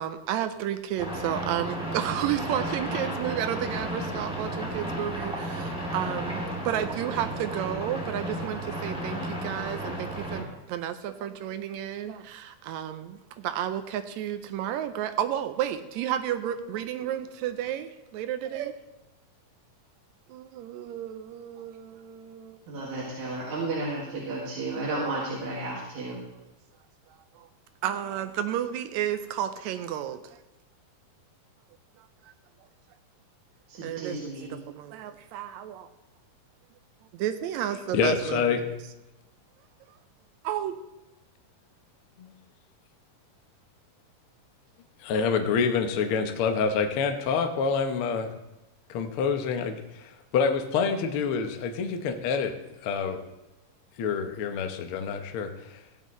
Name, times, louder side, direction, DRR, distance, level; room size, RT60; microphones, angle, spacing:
voice 1, 0.0-18.8 20.3-22.6 23.3-23.4 27.4-27.5 27.8-30.4 33.8-35.9 37.1-38.7 40.4-40.8, right 11 dB, 85° right, 9 dB, 1.6 m, -32 dB
sound 1, 1.0-10.4, right 1 dB, ahead, 1.9 m, -33 dB
voice 2, 22.7-26.2 33.7-34.5, right 2 dB, 60° right, -5 dB, 3.1 m, -33 dB
voice 3, 37.9-38.8 42.2-42.3 45.0-48.3 48.9-53.2 53.9-55.9, left 5 dB, 85° left, 6 dB, 1.2 m, -27 dB
16.5 x 9.1 x 3.1 m, 1.0 s
omnidirectional pair, 3.9 m